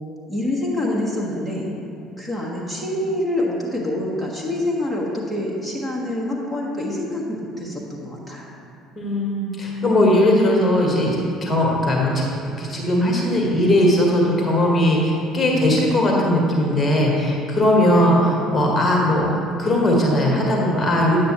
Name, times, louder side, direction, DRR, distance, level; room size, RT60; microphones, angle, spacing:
voice 1, 0.3-1.7 2.2-8.5, left 1 dB, ahead, -5 dB, 1.5 m, -26 dB
voice 2, 9.0-21.2, left 1 dB, 25° left, -2 dB, 1.6 m, -19 dB
9.6 x 7.6 x 3.1 m, 2.6 s
figure-of-eight pair, 55°, 0 cm